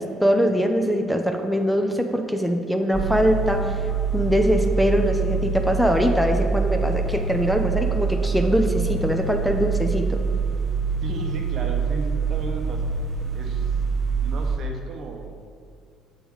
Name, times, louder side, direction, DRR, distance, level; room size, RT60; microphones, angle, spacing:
voice 1, 0.0-3.8 4.1-10.2, equal, ahead, 3 dB, 0.5 m, -22 dB
sound 1, 2.9-14.6, right 5 dB, 35° right, 1.1 m, -25 dB
voice 2, 11.0-12.9 13.3-13.8 14.2-15.3, right 3 dB, 60° right, 2 dB, 0.8 m, -34 dB
7.1 x 3.5 x 4.7 m, 2.2 s
supercardioid pair, 75°, 0 cm